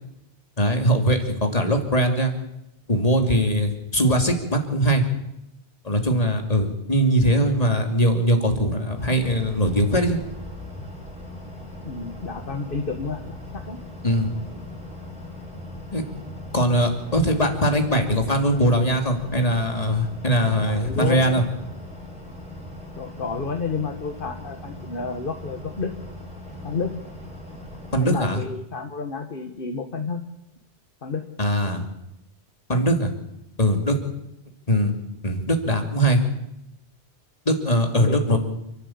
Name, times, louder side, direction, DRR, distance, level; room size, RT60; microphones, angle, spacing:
voice 1, 0.6-2.3 2.9-5.0 5.8-10.2 14.0-14.3 15.9-16.0 16.5-21.4 27.9-28.4 31.4-31.8 32.7-33.1 33.6-34.0 34.7-34.9 35.2-36.2 37.5-38.4, equal, 35° left, 4 dB, 2.9 m, -21 dB
sound 1, 9.0-28.1, left 1 dB, 5° right, 7.7 m, -39 dB
voice 2, 11.8-13.8 20.6-21.4 22.9-25.9 26.6-26.9 28.0-30.2 31.0-31.2 37.9-38.4, left 4 dB, 50° left, 5 dB, 1.7 m, -30 dB
29.0 x 12.0 x 8.7 m, 0.85 s
omnidirectional pair, 1.1 m